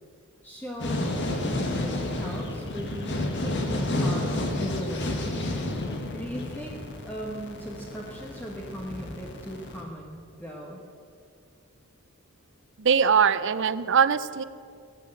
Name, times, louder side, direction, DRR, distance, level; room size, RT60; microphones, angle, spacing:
voice 1, 0.4-5.3 6.2-6.8 7.0-10.8, equal, 10° left, -2 dB, 1.4 m, -39 dB
sound 1, 0.8-9.8, left 1 dB, 55° left, 1.9 m, -30 dB
voice 2, 12.8-14.4, right 7 dB, 60° right, 15 dB, 0.6 m, -21 dB
17.5 x 9.3 x 7.9 m, 2.3 s
head